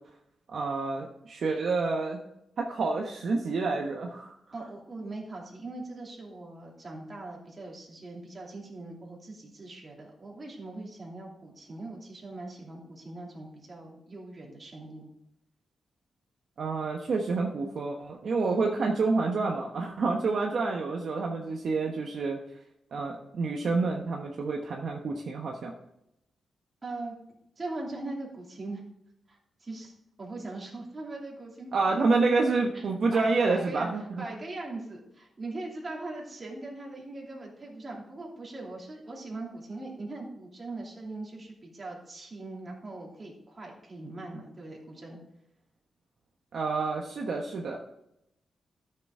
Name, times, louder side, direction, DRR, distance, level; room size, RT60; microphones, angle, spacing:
voice 1, 0.5-2.2 2.6-4.3 16.6-22.4 22.9-25.7 31.7-34.2 46.5-47.8, right 3 dB, 55° right, 0 dB, 1.1 m, -28 dB
voice 2, 4.5-15.1 18.5-18.6 26.8-27.1 27.6-28.8 29.3-32.0 32.7-32.8 33.1-33.9 34.2-45.2, right 2 dB, 25° right, -2 dB, 2.7 m, -41 dB
13.0 x 6.8 x 3.7 m, 0.81 s
wide cardioid pair, 155°, 0 cm